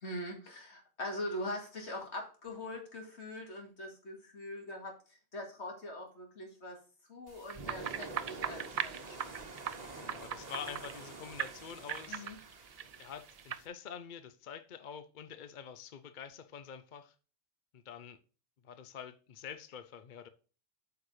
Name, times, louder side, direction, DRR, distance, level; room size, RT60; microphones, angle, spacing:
voice 1, 0.0-6.8 7.1-9.2 12.1-12.4, left 1 dB, 80° left, 2.4 m, -42 dB
Strong winds sound effect, 7.3-13.7, right 3 dB, 40° right, 1.4 m, -48 dB
sound 1, 7.5-11.1 11.4-13.6, right 9 dB, 65° right, 0.3 m, -40 dB
voice 2, 10.0-12.3 13.0-17.1 17.7-18.2 18.6-20.3, left 7 dB, 50° left, 0.7 m, -46 dB
8.5 x 4.8 x 4.8 m
omnidirectional pair, 1.1 m